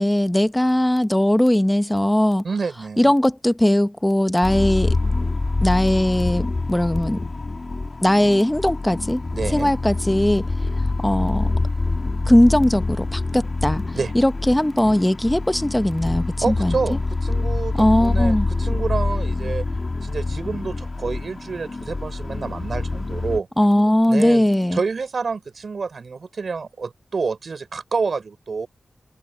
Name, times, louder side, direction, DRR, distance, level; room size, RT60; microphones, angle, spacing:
voice 1, 0.0-2.4 3.0-5.0 5.6-7.2 8.0-9.2 9.5-10.5 11.0-11.5 12.3-16.7 17.8-18.5 23.6-24.8, left 1 dB, 10° left, 1.1 m, -19 dB
voice 2, 2.4-3.0 9.3-9.7 13.9-14.1 16.4-19.6 20.0-23.5 24.1-28.7, right 4 dB, 70° right, 5.5 m, -28 dB
sound 1, 4.4-23.4, left 3 dB, 45° left, 2.0 m, -25 dB
open air
cardioid pair, 60°, 0 cm